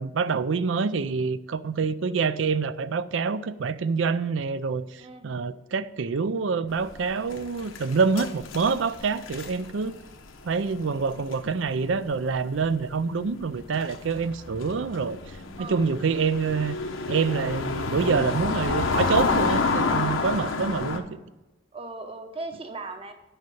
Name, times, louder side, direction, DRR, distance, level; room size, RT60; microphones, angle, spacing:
voice 1, 0.0-10.0 10.4-16.8 17.1-21.2, right 5 dB, 75° right, 15 dB, 0.5 m, -26 dB
sound 1, 6.8-12.4 12.6-12.8 13.5-21.0, left 3 dB, 85° left, 0.9 m, -29 dB
voice 2, 21.7-23.1, right 3 dB, 30° right, 6 dB, 0.9 m, -37 dB
7.9 x 5.7 x 7.7 m, 1.1 s
head